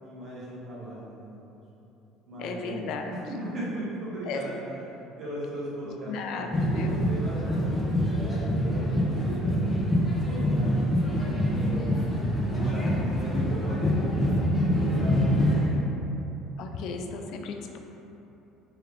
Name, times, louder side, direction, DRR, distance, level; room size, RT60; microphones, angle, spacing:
voice 1, 0.0-1.5 2.3-2.8 3.1-4.6 5.0-7.6 8.0-9.7 10.2-12.2 12.5-15.3, right 1 dB, 45° right, -8 dB, 1.5 m, -38 dB
voice 2, 2.4-3.1 4.2-4.4 6.1-7.0 16.6-17.8, left 4 dB, 65° left, 4 dB, 0.3 m, -35 dB
sound 1, 6.5-15.8, equal, 15° left, 0.7 m, -25 dB
3.5 x 3.2 x 3.5 m, 3.0 s
supercardioid pair, 95°, 0 cm